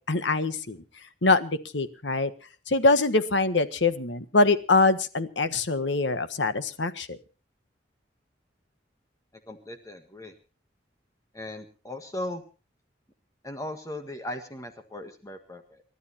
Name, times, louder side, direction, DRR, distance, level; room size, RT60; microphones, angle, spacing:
voice 1, 0.1-0.8 1.2-2.3 2.7-7.2, left 3 dB, 75° left, 11 dB, 1.4 m, -24 dB
voice 2, 9.5-10.3 11.3-12.4 13.4-15.8, left 1 dB, 20° left, 6 dB, 1.6 m, -38 dB
29.0 x 12.5 x 2.9 m, 0.35 s
head